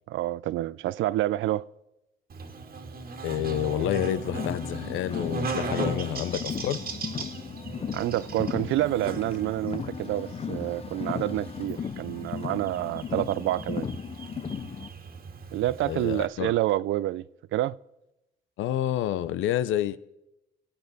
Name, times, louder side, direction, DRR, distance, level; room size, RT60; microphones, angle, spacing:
voice 1, 0.1-1.7 7.9-13.9 15.5-17.3 17.5-17.8, right 15 dB, 75° right, 0.4 m, -28 dB
Buzz, 2.3-16.3, right 4 dB, 50° right, 1.7 m, -38 dB
voice 2, 3.2-6.8 15.8-16.5 18.6-20.0, left 12 dB, 80° left, 0.6 m, -29 dB
Car, 3.8-14.9, left 7 dB, 30° left, 0.4 m, -36 dB
20.5 x 8.8 x 4.1 m
cardioid pair, 90°, 20 cm